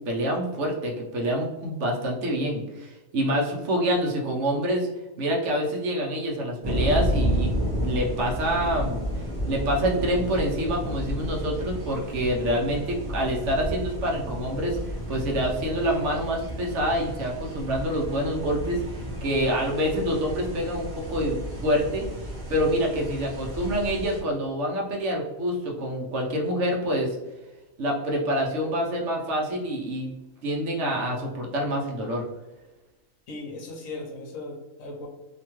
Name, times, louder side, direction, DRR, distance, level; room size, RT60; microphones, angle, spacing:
voice 1, 0.1-4.9 5.2-7.5 7.8-9.0 9.5-22.0 22.5-27.2 27.8-30.1 30.4-32.3, equal, 65° right, -1 dB, 1.0 m, -26 dB
sound 1, 6.6-24.2, equal, 25° right, 0.6 m, -31 dB
voice 2, 33.3-35.1, left 2 dB, 90° left, 0 dB, 1.0 m, -37 dB
2.8 x 2.2 x 2.9 m, 1.1 s
omnidirectional pair, 1.4 m